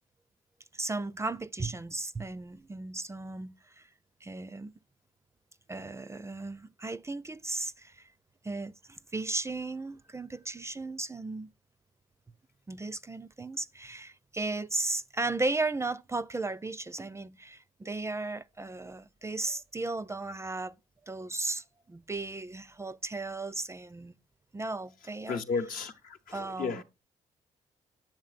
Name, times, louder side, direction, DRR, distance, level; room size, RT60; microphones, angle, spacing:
voice 1, 0.7-3.9 4.2-4.7 5.7-8.1 8.4-11.5 12.7-20.7 21.1-24.1 24.5-25.4 26.3-26.8, right 2 dB, 20° right, 0.4 m, -35 dB
voice 2, 25.3-26.8, left 5 dB, 70° left, 0.9 m, -34 dB
7.4 x 7.2 x 2.4 m
supercardioid pair, 55°, 15 cm